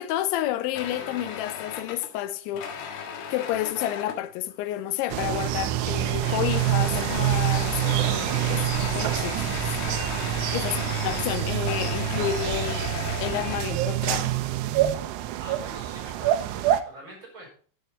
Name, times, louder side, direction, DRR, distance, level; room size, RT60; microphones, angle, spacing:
voice 1, 0.0-9.7 10.5-12.9 13.2-14.3, left 12 dB, 85° left, 3.0 m, -30 dB
sound 1, 0.7-4.3 5.2-5.6 5.9-13.6, left 7 dB, 65° left, 3.0 m, -36 dB
sound 2, 5.1-16.8, right 13 dB, 80° right, 2.6 m, -26 dB
sound 3, 7.1-12.8, right 1 dB, 10° right, 3.7 m, -40 dB
voice 2, 15.4-17.5, right 1 dB, 25° right, 5.2 m, -44 dB
11.5 x 8.0 x 4.2 m
omnidirectional pair, 5.3 m